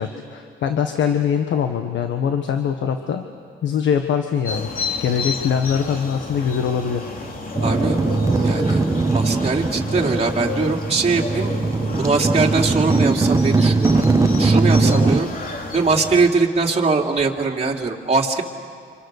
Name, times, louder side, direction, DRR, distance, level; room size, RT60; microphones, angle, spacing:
voice 1, 0.0-3.2 3.6-7.0, left 7 dB, 70° left, 6 dB, 1.5 m, -22 dB
sound 1, 4.4-16.3, left 3 dB, 45° left, 3.0 m, -31 dB
sound 2, 7.5-15.2, right 3 dB, 15° right, 1.1 m, -20 dB
voice 2, 7.6-8.0 8.4-8.8 9.1-11.5 12.0-15.3 15.7-18.4, right 4 dB, 30° right, -1 dB, 2.9 m, -21 dB
29.0 x 26.5 x 6.7 m, 2.2 s
cardioid pair, 90°, 20 cm